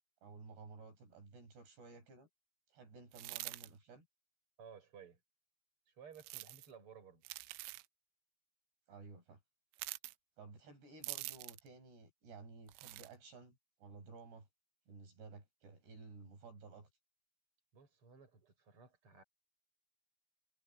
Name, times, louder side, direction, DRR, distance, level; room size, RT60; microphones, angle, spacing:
voice 1, 0.2-2.3 2.7-4.1 8.9-9.4 10.4-14.5 14.9-16.9, right 4 dB, 55° right, 8.3 m, -55 dB
sound 1, 3.1-3.7 6.2-6.7 7.2-7.9 9.7-10.1 11.0-11.7 12.7-13.1, right 21 dB, 90° right, 3.2 m, -46 dB
voice 2, 4.6-5.2 5.9-7.2 17.7-19.2, right 7 dB, 25° right, 7.3 m, -57 dB
omnidirectional pair, 5.7 m